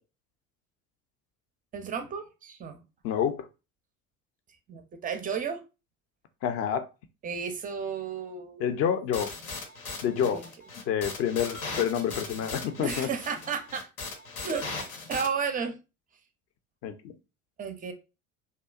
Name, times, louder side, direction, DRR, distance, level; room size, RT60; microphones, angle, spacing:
voice 1, 1.7-2.8 4.7-5.6 7.2-8.7 10.2-10.4 12.8-13.9 14.4-15.7 17.6-17.9, right 6 dB, 20° right, 7 dB, 0.4 m, -33 dB
voice 2, 3.0-3.5 6.4-6.9 8.6-9.3 10.0-10.4 10.9-13.1 16.8-17.1, left 8 dB, 35° left, 9 dB, 0.5 m, -28 dB
sound 1, 9.1-15.3, left 3 dB, 80° left, 0.7 m, -38 dB
2.8 x 2.2 x 2.3 m, 0.30 s
figure-of-eight pair, 65°, 42 cm